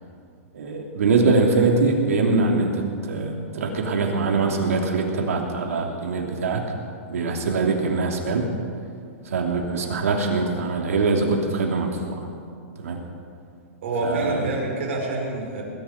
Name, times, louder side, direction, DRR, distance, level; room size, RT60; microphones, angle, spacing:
voice 1, 0.5-6.6 7.1-8.5 9.2-12.3 12.8-13.0 14.0-14.5, right 3 dB, 85° right, 2 dB, 3.0 m, -23 dB
voice 2, 13.8-15.6, right 2 dB, 60° right, -1 dB, 5.0 m, -27 dB
20.5 x 7.5 x 9.3 m, 2.2 s
hypercardioid pair, 160°, 8 cm